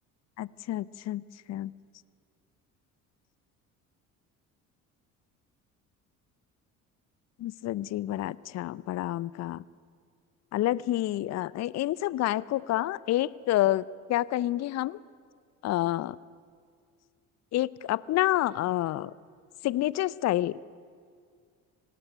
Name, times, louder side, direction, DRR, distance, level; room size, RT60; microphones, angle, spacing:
voice 1, 0.4-1.2 1.5-1.7 7.4-9.6 10.5-15.0 15.6-16.2 17.5-19.1 19.6-20.6, left 14 dB, 40° left, 22 dB, 0.6 m, -28 dB
19.0 x 18.0 x 9.2 m, 2.2 s
hypercardioid pair, 60°, 43 cm